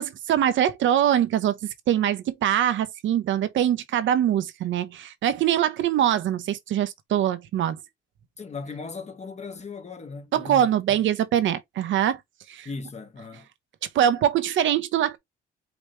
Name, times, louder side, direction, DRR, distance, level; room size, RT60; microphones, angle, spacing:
voice 1, 0.0-1.5 1.9-7.8 10.3-12.2 12.5-12.7 13.9-15.2, right 10 dB, 75° right, 0.9 m, -23 dB
voice 2, 8.4-11.0 12.6-13.5, left 4 dB, 35° left, 1.3 m, -37 dB
5.1 x 3.0 x 3.1 m
cardioid pair, 90°, 20 cm